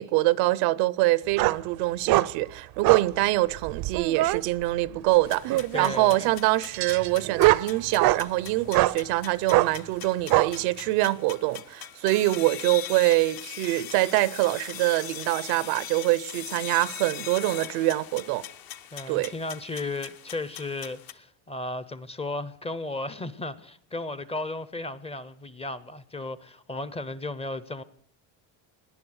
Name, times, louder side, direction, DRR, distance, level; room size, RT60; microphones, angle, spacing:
voice 1, 0.0-18.4 19.1-19.3, right 18 dB, 90° right, 0.7 m, -25 dB
sound 1, 1.4-1.6 2.1-2.3 2.8-3.1 3.6-4.4 5.4-6.0 6.7-8.2 8.7-9.0 9.5-9.7 10.3-10.5, right 17 dB, 55° right, 0.5 m, -23 dB
sound 2, 5.3-21.1, left 11 dB, 55° left, 0.9 m, -41 dB
voice 2, 5.7-6.3 18.9-27.8, left 2 dB, 15° left, 0.5 m, -35 dB
18.0 x 10.5 x 6.4 m
cardioid pair, 115°, 44 cm